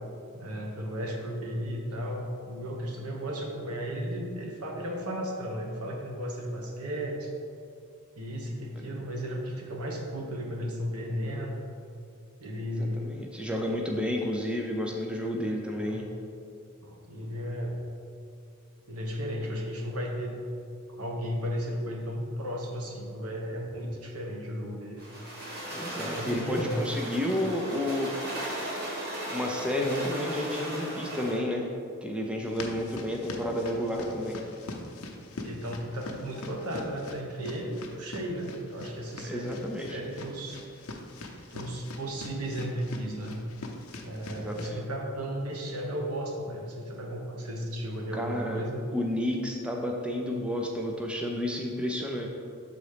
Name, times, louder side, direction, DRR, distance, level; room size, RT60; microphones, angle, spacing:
voice 1, 0.3-7.3 8.2-11.6 12.4-13.2 15.6-16.0 16.8-17.8 18.9-20.4 20.9-25.0 25.9-27.0 35.4-39.5 39.9-40.6 41.5-43.4 44.0-48.8, equal, 90° right, 0 dB, 1.1 m, -34 dB
voice 2, 12.8-16.1 25.7-28.1 29.3-31.7 32.0-34.4 39.2-40.0 44.3-44.8 48.1-48.6 48.9-52.3, left 1 dB, 5° right, 0 dB, 0.6 m, -31 dB
sound 1, 25.0-31.5, right 1 dB, 45° right, 1.7 m, -37 dB
sound 2, 32.4-44.7, left 2 dB, 70° left, 0.7 m, -43 dB
6.9 x 4.0 x 5.0 m, 2.3 s
head